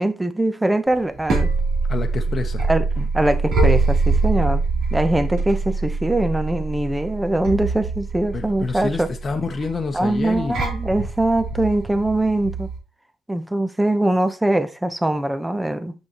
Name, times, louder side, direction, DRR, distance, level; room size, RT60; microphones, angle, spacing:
voice 1, 0.0-1.5 2.7-4.6 4.9-9.1 9.9-12.7 13.3-15.9, right 1 dB, 10° right, 0.8 m, -22 dB
sound 1, 0.9-12.8, right 3 dB, 80° right, 3.4 m, -24 dB
voice 2, 1.9-2.6 8.3-10.7, left 4 dB, 40° left, 1.0 m, -27 dB
6.4 x 6.1 x 3.0 m
cardioid pair, 90°, 0 cm